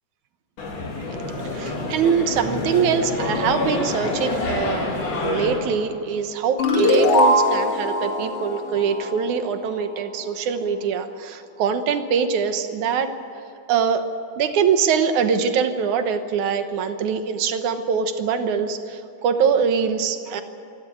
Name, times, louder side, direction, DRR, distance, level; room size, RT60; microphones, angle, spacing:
sound 1, 0.6-5.6, left 2 dB, 65° left, 4.7 m, -27 dB
voice 1, 1.5-13.1 13.7-14.1 14.4-20.4, right 6 dB, 65° right, 8 dB, 2.4 m, -23 dB
sound 2, 6.6-9.8, left 1 dB, 50° left, 2.5 m, -21 dB
27.0 x 12.5 x 9.3 m, 2.9 s
omnidirectional pair, 3.9 m